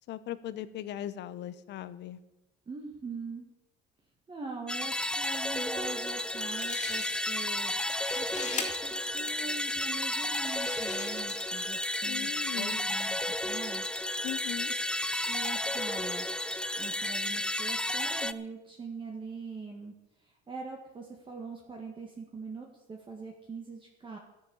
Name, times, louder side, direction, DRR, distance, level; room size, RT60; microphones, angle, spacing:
voice 1, 0.1-2.2 12.1-12.9 14.2-14.7, left 12 dB, 60° left, 14 dB, 1.0 m, -39 dB
voice 2, 2.7-3.5 4.3-7.7 8.1-13.9 15.3-16.3 16.8-19.9 20.2-24.2, right 4 dB, 25° right, 0 dB, 1.8 m, -43 dB
sound 1, 4.7-18.3, left 1 dB, 5° left, 0.4 m, -32 dB
sound 2, 6.2-6.3 6.5-7.5 7.8-8.7 9.4-9.5 10.2-11.7, left 5 dB, 35° left, 2.6 m, -41 dB
14.0 x 8.9 x 7.1 m, 0.98 s
cardioid pair, 120°, 21 cm